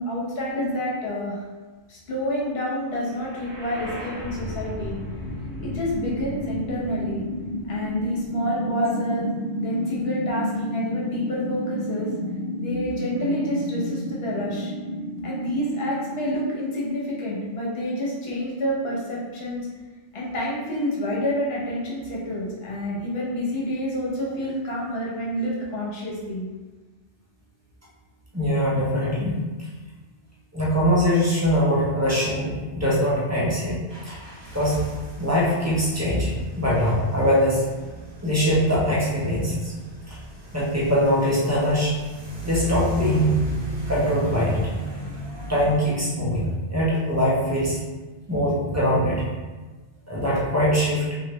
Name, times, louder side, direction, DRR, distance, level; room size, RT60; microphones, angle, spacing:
voice 1, 0.1-1.4 1.9-5.0 5.6-7.2 7.7-9.3 9.6-12.1 12.6-14.7 15.2-19.7 20.1-26.4, equal, 65° left, -5 dB, 1.0 m, -28 dB
sound 1, 3.1-17.1, left 1 dB, 70° right, 0.8 m, -31 dB
voice 2, 28.3-29.4 30.5-33.8 34.0-34.2 34.5-34.8 35.2-37.6 38.2-39.7 40.5-41.9 42.4-43.4 43.9-44.7 45.5-47.8 48.3-49.2 50.1-51.1, equal, 20° right, -7 dB, 0.5 m, -22 dB
sound 2, 33.9-45.8, right 1 dB, 35° right, 1.1 m, -37 dB
3.1 x 2.3 x 3.0 m, 1.2 s
omnidirectional pair, 1.2 m